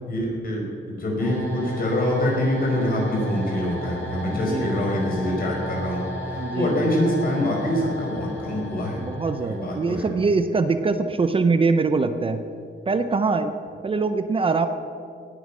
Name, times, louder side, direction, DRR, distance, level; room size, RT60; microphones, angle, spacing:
voice 1, 0.1-9.0 9.4-10.1, left 1 dB, 50° left, -1 dB, 5.1 m, -25 dB
sound 1, 1.2-10.1, left 1 dB, 10° left, 4.5 m, -35 dB
voice 2, 6.4-6.9 9.0-12.4 12.9-13.5 13.8-14.7, right 4 dB, 30° right, 9 dB, 0.6 m, -23 dB
18.5 x 11.5 x 6.2 m, 2.4 s
wide cardioid pair, 160°, 19 cm